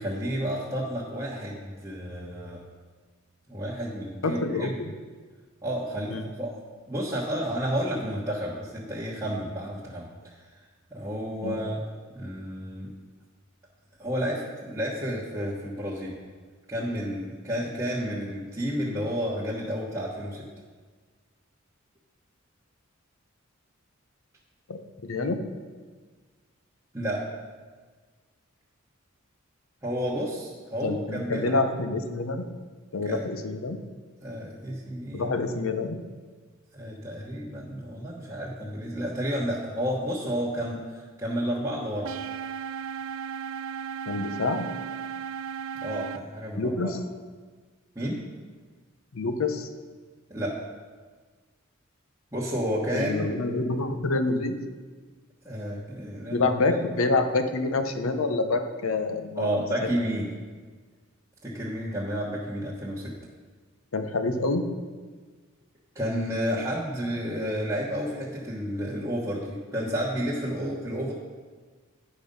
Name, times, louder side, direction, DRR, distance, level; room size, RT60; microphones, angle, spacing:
voice 1, 0.0-2.6 3.5-4.7 5.6-10.4 10.9-11.8 12.1-12.9 14.0-16.2 16.7-20.4 26.9-27.3 29.8-31.6 33.0-33.2 34.2-35.3 36.7-42.1 45.8-46.9 47.9-48.2 50.3-50.6 52.3-53.3 55.4-56.8 59.4-60.3 61.4-63.1 65.9-71.1, equal, 15° right, -9 dB, 1.2 m, -31 dB
voice 2, 4.2-4.9 6.1-6.3 11.4-11.6 24.7-25.5 30.8-32.5 32.9-33.8 35.1-36.0 44.1-44.6 46.6-47.0 49.1-49.7 52.9-54.6 56.3-59.6 63.9-64.8, left 3 dB, 75° left, 8 dB, 0.7 m, -27 dB
sound 1, 42.0-46.2, right 7 dB, 75° right, 0.4 m, -35 dB
10.5 x 5.3 x 5.4 m, 1.4 s
head